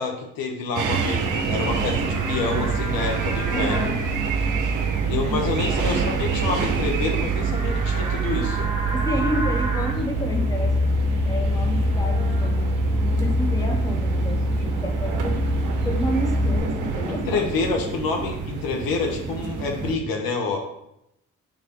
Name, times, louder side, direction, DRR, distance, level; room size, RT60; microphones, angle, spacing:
voice 1, 0.0-3.9 5.1-8.7 17.1-20.6, left 4 dB, 65° left, 2 dB, 0.9 m, -27 dB
sound 1, 0.8-20.0, right 5 dB, 55° right, 0.7 m, -29 dB
Livestock farm animals working animals, 1.7-16.6, right 1 dB, 15° right, 1.3 m, -25 dB
voice 2, 3.5-4.0 5.3-5.6 8.9-10.9 11.2-12.8 13.1-15.4 15.8-17.5, equal, 10° left, 2 dB, 0.8 m, -30 dB
3.6 x 3.3 x 4.5 m, 0.82 s
hypercardioid pair, 45°, 37 cm